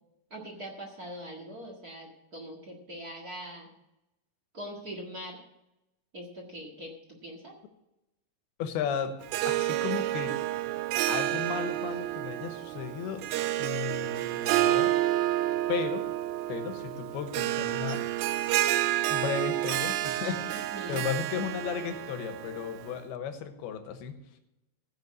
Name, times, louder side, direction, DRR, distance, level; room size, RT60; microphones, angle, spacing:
voice 1, 0.3-3.7 4.5-5.4 6.1-7.5 20.7-21.1, equal, 40° right, 0 dB, 1.4 m, -42 dB
voice 2, 8.6-9.1 9.4-10.3 11.1-13.2 13.6-15.0 15.7-16.1 16.5-18.0 19.1-24.2, left 7 dB, 80° left, 7 dB, 3.1 m, -35 dB
Harp, 9.2-23.0, right 14 dB, 80° right, 2.3 m, -30 dB
15.0 x 5.7 x 8.2 m, 0.89 s
omnidirectional pair, 4.5 m